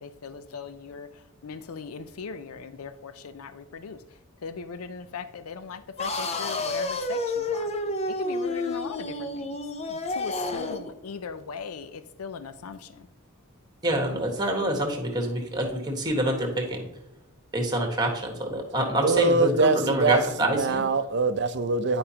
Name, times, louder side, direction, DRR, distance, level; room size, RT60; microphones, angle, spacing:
voice 1, 0.0-4.0 4.4-7.7 8.1-9.6 9.9-13.1, left 5 dB, 85° left, 12 dB, 0.5 m, -39 dB
sound 1, 6.0-10.9, left 2 dB, 30° left, 0.6 m, -30 dB
voice 2, 13.8-16.9 17.5-20.8, right 1 dB, 20° right, 2 dB, 1.4 m, -26 dB
voice 3, 19.0-22.0, right 3 dB, 55° right, 10 dB, 0.6 m, -23 dB
10.5 x 5.2 x 2.9 m, 0.90 s
head